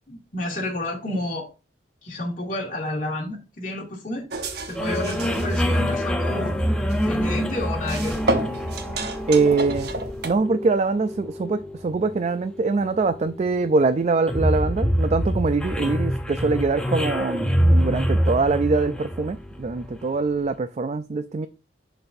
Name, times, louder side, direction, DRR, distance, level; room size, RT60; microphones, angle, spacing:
voice 1, 0.1-1.5 2.0-4.3 4.6-6.5 7.1-8.2, left 1 dB, 45° left, 0 dB, 2.3 m, -30 dB
sound 1, 4.3-10.3, right 2 dB, 60° right, 0.9 m, -31 dB
sound 2, 4.8-20.2, equal, 5° left, 0.7 m, -26 dB
voice 2, 9.3-9.9 10.2-21.5, right 3 dB, 40° right, 11 dB, 0.4 m, -23 dB
11.0 x 4.1 x 2.6 m, 0.31 s
head